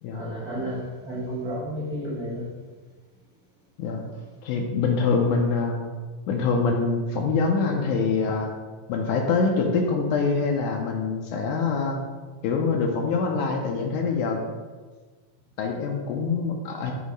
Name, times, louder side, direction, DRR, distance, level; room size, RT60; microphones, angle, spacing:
voice 1, 0.1-2.4, equal, 85° right, -8 dB, 0.8 m, -32 dB
voice 2, 4.4-5.8 6.3-8.5 8.9-12.0 12.4-14.4 15.6-16.9, left 4 dB, 80° left, 1 dB, 1.9 m, -24 dB
6.4 x 3.1 x 5.1 m, 1.4 s
omnidirectional pair, 3.9 m